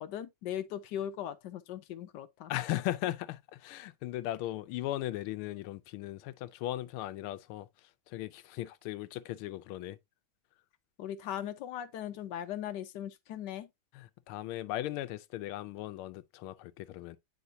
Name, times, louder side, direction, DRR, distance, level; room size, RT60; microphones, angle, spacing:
voice 1, 0.0-2.5 11.0-13.7, left 10 dB, 70° left, 1.1 m, -39 dB
voice 2, 2.5-10.0 13.9-17.2, left 14 dB, 90° left, 1.5 m, -37 dB
9.5 x 4.4 x 2.6 m
omnidirectional pair, 2.3 m